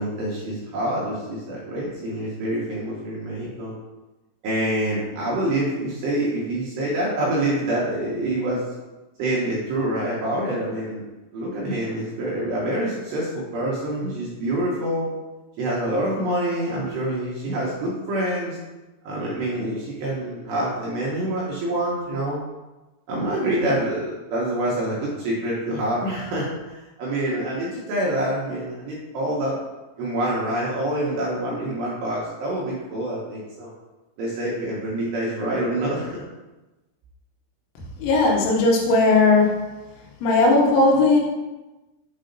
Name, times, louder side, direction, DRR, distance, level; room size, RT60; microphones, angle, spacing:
voice 1, 0.0-3.8 4.4-8.6 9.2-11.0 11.3-15.1 15.6-18.6 19.0-22.4 23.1-26.5 26.7-29.6 30.0-33.7 34.2-36.2, right 1 dB, 75° right, -5 dB, 2.7 m, -26 dB
voice 2, 38.0-39.5 40.2-41.2, left 3 dB, 75° left, -1 dB, 3.4 m, -17 dB
7.6 x 2.8 x 5.2 m, 1.1 s
omnidirectional pair, 5.9 m